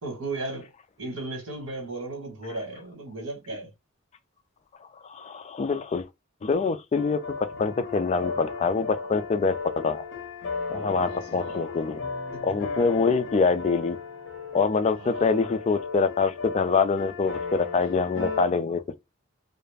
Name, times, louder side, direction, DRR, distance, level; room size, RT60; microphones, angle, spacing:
voice 1, 0.0-0.7 1.0-3.7 10.9-11.6 12.3-12.4 15.0-15.3, right 2 dB, 65° right, 1.3 m, -36 dB
voice 2, 5.1-6.1 6.4-10.0 10.7-12.1 12.4-14.0 14.5-19.0, left 4 dB, 30° left, 0.3 m, -25 dB
sound 1, 6.9-18.5, left 4 dB, 65° left, 0.8 m, -36 dB
2.4 x 2.0 x 3.3 m
head